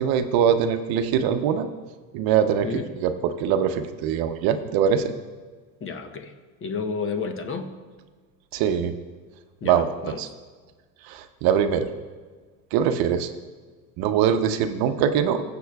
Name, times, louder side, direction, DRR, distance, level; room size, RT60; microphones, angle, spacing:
voice 1, 0.0-1.7 2.1-2.7 3.0-5.1 8.5-9.0 9.6-10.3 11.0-11.9 12.7-13.3 14.0-15.4, right 8 dB, 60° right, 8 dB, 0.8 m, -22 dB
voice 2, 5.8-6.3 6.6-7.7 9.6-10.2, left 5 dB, 30° left, 7 dB, 0.9 m, -31 dB
19.5 x 6.9 x 2.3 m, 1.4 s
supercardioid pair, 105°, 40 cm